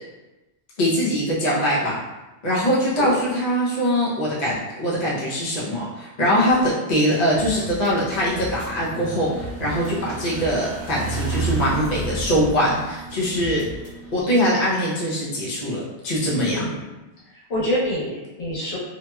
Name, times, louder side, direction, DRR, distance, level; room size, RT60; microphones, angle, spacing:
voice 1, 0.8-2.0 2.4-13.6 14.1-16.7, equal, 45° left, -7 dB, 0.8 m, -22 dB
sound 1, 6.6-6.7 7.1-8.7 9.3-10.5 10.8-10.9 11.3-12.7 13.1-13.9, right 1 dB, 30° right, 1.2 m, -37 dB
sound 2, 7.9-14.1, right 4 dB, 55° right, 0.7 m, -32 dB
voice 2, 16.5-16.9 17.5-18.8, left 1 dB, 80° left, -9 dB, 1.4 m, -26 dB
2.8 x 2.7 x 2.2 m, 1.0 s
omnidirectional pair, 1.1 m